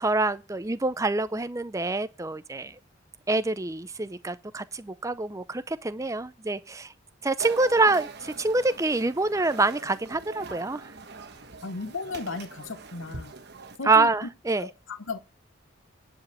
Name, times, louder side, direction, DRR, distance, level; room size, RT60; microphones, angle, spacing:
voice 1, 0.0-2.7 3.3-6.9 7.2-10.9 13.9-14.7, right 3 dB, 15° right, 0.5 m, -26 dB
sound 1, 7.4-13.8, right 4 dB, 50° right, 1.2 m, -43 dB
voice 2, 11.6-13.3 13.8-14.3 14.6-15.2, left 4 dB, 65° left, 1.0 m, -35 dB
10.5 x 5.0 x 7.6 m
head